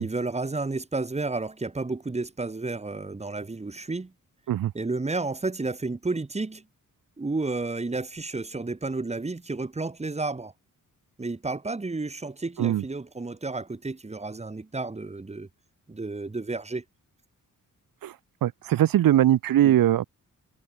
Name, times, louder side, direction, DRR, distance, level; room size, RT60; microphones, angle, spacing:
voice 1, 0.0-4.1 4.7-6.6 7.2-10.5 11.2-15.5 15.9-16.8 19.6-19.8, right 3 dB, 20° right, 7.1 m, -31 dB
voice 2, 18.4-20.0, right 12 dB, 85° right, 1.1 m, -21 dB
wide cardioid pair, 155°, 33 cm